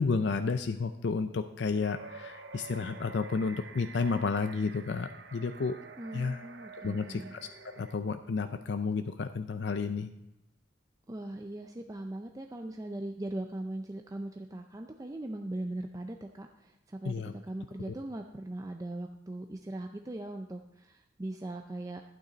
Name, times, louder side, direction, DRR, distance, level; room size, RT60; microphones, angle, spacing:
voice 1, 0.0-5.8 6.1-6.4 6.8-7.5 7.8-10.1 17.1-17.3, left 4 dB, 65° left, 9 dB, 0.4 m, -31 dB
sound 1, 1.8-8.0, right 4 dB, 65° right, 0.8 m, -49 dB
voice 2, 6.0-7.4 11.1-22.0, right 1 dB, 20° right, 4 dB, 0.5 m, -40 dB
11.5 x 9.1 x 3.9 m, 0.88 s
head